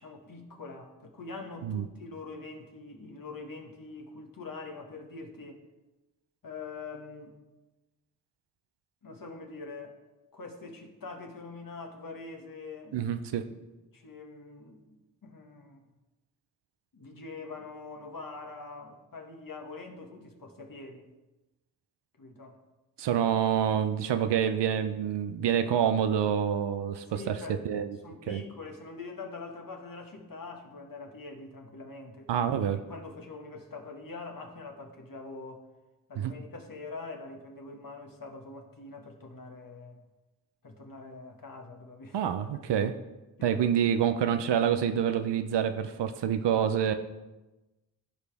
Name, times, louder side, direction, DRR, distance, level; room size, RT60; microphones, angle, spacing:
voice 1, 0.0-5.6 6.4-7.4 9.0-10.0 10.3-13.0 13.5-13.6 13.9-15.0 15.2-15.8 16.9-21.1 22.2-22.6 27.1-27.7 28.0-32.5 32.9-35.7 36.1-40.0 40.6-42.2 43.4-43.6, left 3 dB, 50° left, 2 dB, 1.7 m, -44 dB
voice 2, 12.9-13.4 23.0-27.4 27.6-27.9 28.3-28.4 32.3-32.8 36.2-36.3 42.1-42.9 43.4-46.9, right 9 dB, 75° right, 9 dB, 0.7 m, -27 dB
15.0 x 5.0 x 3.5 m, 1.1 s
cardioid pair, 45°, 42 cm